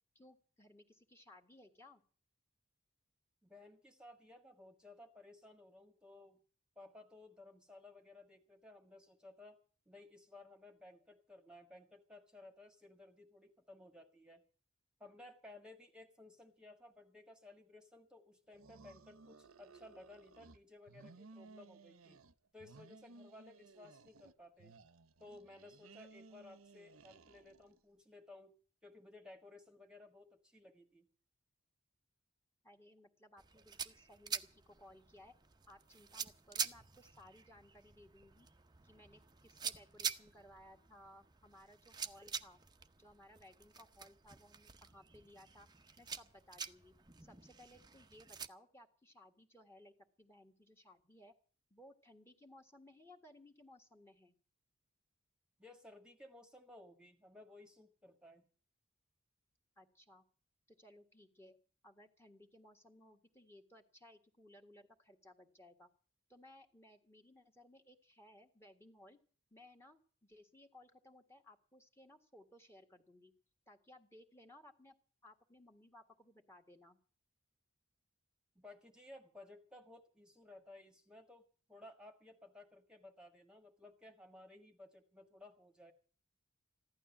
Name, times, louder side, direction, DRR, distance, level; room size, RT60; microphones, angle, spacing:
voice 1, 0.1-2.0 32.6-35.3 35.7-38.5 38.8-42.6 43.0-45.7 46.0-46.9 47.2-51.3 51.7-54.3 59.8-60.2 60.7-61.6 61.8-65.9 66.3-69.2 69.5-73.3 73.7-75.0 75.2-77.0, left 1 dB, 10° left, 6 dB, 1.7 m, -61 dB
voice 2, 3.4-6.4 6.7-9.6 9.9-14.4 15.0-22.2 22.5-24.7 25.2-28.5 28.8-31.1 55.6-58.4 78.5-85.9, left 2 dB, 5° right, 4 dB, 1.5 m, -58 dB
sound 1, 18.5-20.6 20.9-22.3 22.6-24.3 24.6-27.8, right 3 dB, 85° right, 0.9 m, -59 dB
sound 2, 33.4-48.5, right 6 dB, 20° right, 0.7 m, -47 dB
15.5 x 11.5 x 7.2 m, 0.41 s
head